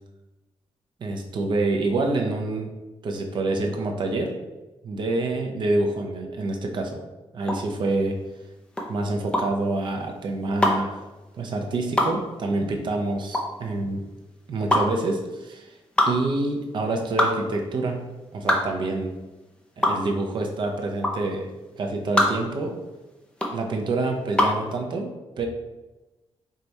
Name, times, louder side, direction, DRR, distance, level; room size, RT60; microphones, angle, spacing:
voice 1, 1.0-2.7 3.0-4.3 4.8-7.0 7.3-8.2 8.9-11.0 11.3-14.0 14.5-15.8 16.1-18.0 18.3-19.1 19.8-21.5 21.8-22.8 23.5-25.1 25.4-25.5, right 2 dB, 50° right, 3 dB, 0.6 m, -27 dB
sound 1, 7.4-24.7, left 1 dB, 10° left, 0.5 m, -25 dB
4.7 x 2.3 x 4.0 m, 1.1 s
wide cardioid pair, 170°, 10 cm